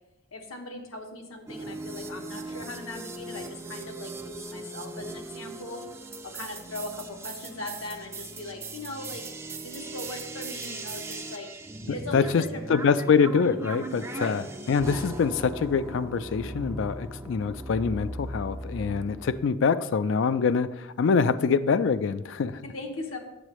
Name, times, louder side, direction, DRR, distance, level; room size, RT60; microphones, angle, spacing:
voice 1, 0.3-5.8 6.2-9.2 9.6-11.5 11.9-12.7 14.2-14.4 14.7-15.2 22.6-23.2, left 2 dB, 80° left, 3 dB, 1.1 m, -39 dB
sound 1, 1.5-19.5, right 2 dB, 15° right, 0.4 m, -38 dB
voice 2, 11.9-12.4 12.7-14.4 14.7-22.6, left 5 dB, 60° left, 14 dB, 0.3 m, -25 dB
8.0 x 7.5 x 3.0 m, 0.96 s
head